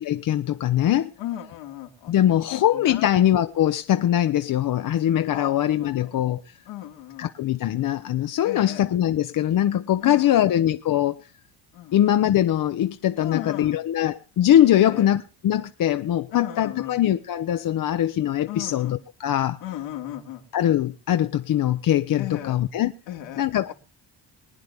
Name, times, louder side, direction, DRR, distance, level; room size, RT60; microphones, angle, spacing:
voice 1, 0.0-1.1 2.1-6.4 7.2-11.2 11.9-19.6 20.5-22.9 23.4-23.7, left 11 dB, 50° left, 0.6 m, -22 dB
voice 2, 1.2-2.1 2.5-3.1 5.3-6.1 6.7-7.3 8.4-8.8 10.0-10.5 11.7-12.1 13.2-13.8 14.8-15.1 16.3-17.0 18.5-19.0 19.6-20.4 22.2-22.6 23.1-23.7, left 12 dB, 90° left, 2.6 m, -35 dB
23.5 x 9.4 x 3.4 m
cardioid pair, 115°, 44 cm